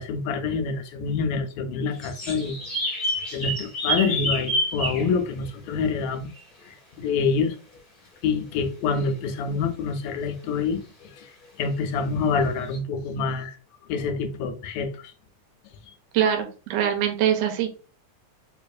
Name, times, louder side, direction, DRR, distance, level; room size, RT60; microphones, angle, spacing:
voice 1, 0.0-2.6 2.9-3.0 3.3-6.3 6.7-7.6 8.2-11.2 11.6-13.6 13.9-15.1, left 5 dB, 80° left, 1.7 m, -26 dB
sound 1, 1.9-5.1 6.3-6.4 11.6-11.7 12.7-12.8, equal, 55° left, 0.5 m, -28 dB
voice 2, 16.1-17.7, right 9 dB, 75° right, 1.8 m, -23 dB
4.7 x 2.4 x 2.4 m
omnidirectional pair, 3.5 m